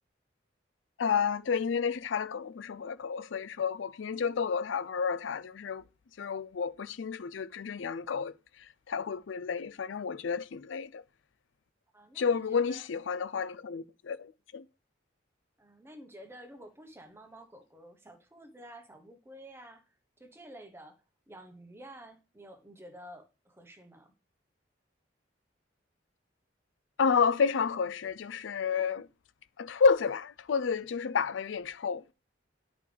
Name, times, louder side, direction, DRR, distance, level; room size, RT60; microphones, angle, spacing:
voice 1, 1.0-5.8 6.2-8.3 8.9-11.0 12.2-14.6 27.0-29.1 29.6-32.1, left 5 dB, 80° left, 0.4 m, -30 dB
voice 2, 11.9-12.8 15.6-19.8 20.2-21.0 21.3-24.1, equal, 15° right, 1.1 m, -51 dB
10.5 x 5.1 x 3.4 m
head